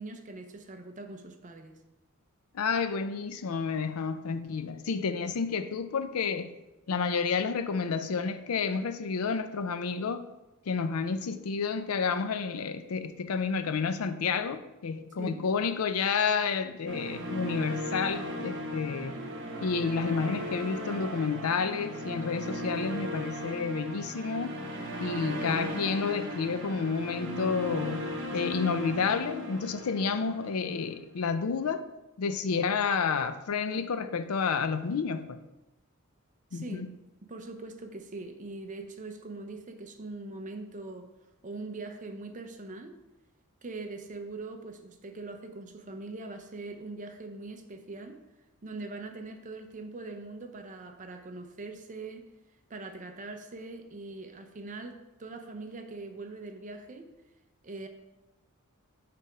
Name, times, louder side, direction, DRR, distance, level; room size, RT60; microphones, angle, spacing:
voice 1, 0.0-1.8 15.2-15.4 36.5-36.9 37.3-41.1 41.4-42.9 43.6-48.2 48.6-52.3 52.7-57.1 57.6-57.9, right 3 dB, 35° right, 0.6 m, -42 dB
voice 2, 2.5-6.5 6.9-10.3 10.7-19.2 19.6-24.6 25.0-28.0 28.3-31.8 32.2-35.4 36.5-36.9, left 5 dB, 80° left, 0.5 m, -30 dB
sound 1, 16.9-31.0, equal, 60° right, 0.9 m, -37 dB
6.7 x 3.4 x 4.9 m
head